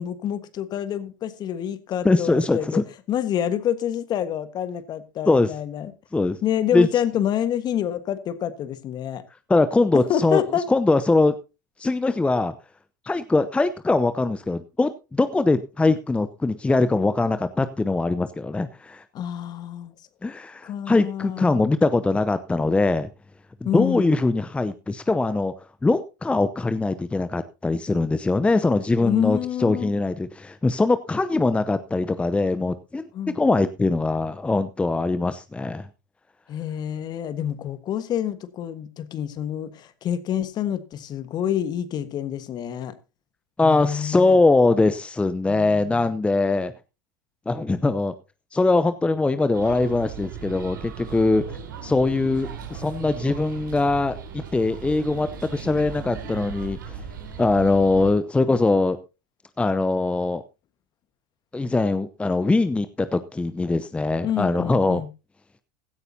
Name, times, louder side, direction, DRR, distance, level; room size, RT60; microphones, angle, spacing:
voice 1, 0.0-2.8 3.1-5.9 6.4-9.2 9.9-10.6 19.1-19.9 20.6-21.6 23.6-24.1 29.0-29.9 33.1-33.4 36.5-42.9 43.6-44.4 45.5-46.1 64.2-65.1, left 10 dB, 40° left, 1.4 m, -27 dB
voice 2, 2.0-2.8 5.3-5.5 6.1-6.4 6.7-6.9 9.5-10.4 10.7-11.3 11.8-12.5 13.0-19.0 20.2-23.1 23.6-25.5 25.8-33.1 33.3-35.9 43.6-46.7 47.5-48.1 48.5-57.0 57.4-59.0 59.6-60.4 61.5-65.0, left 3 dB, 10° left, 0.7 m, -22 dB
sound 1, 49.5-58.1, right 6 dB, 80° right, 4.2 m, -37 dB
16.0 x 13.5 x 2.8 m
hypercardioid pair, 85°, 11 cm